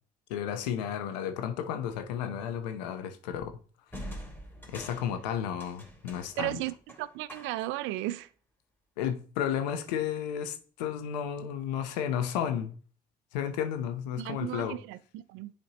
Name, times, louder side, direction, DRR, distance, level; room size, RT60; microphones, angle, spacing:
voice 1, 0.3-3.6 4.7-6.6 9.0-12.7 13.3-14.8, left 9 dB, 85° left, 0.8 m, -33 dB
sound 1, 1.8-2.1 3.9-7.8, equal, 10° left, 2.8 m, -46 dB
voice 2, 6.4-8.3 14.2-15.5, right 16 dB, 70° right, 0.5 m, -35 dB
10.5 x 4.4 x 2.9 m
hypercardioid pair, 50°, 21 cm